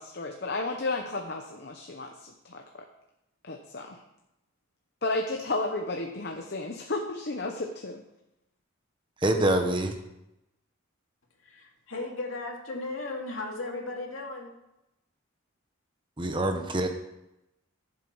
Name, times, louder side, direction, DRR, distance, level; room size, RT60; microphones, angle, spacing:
voice 1, 0.0-2.9 3.4-4.0 5.0-8.0, left 2 dB, 50° left, 3 dB, 0.9 m, -33 dB
voice 2, 9.2-10.0 16.2-16.9, right 1 dB, 25° right, 5 dB, 1.0 m, -25 dB
voice 3, 11.4-14.5, left 2 dB, 80° left, 0 dB, 2.4 m, -36 dB
14.5 x 7.5 x 4.7 m, 0.90 s
head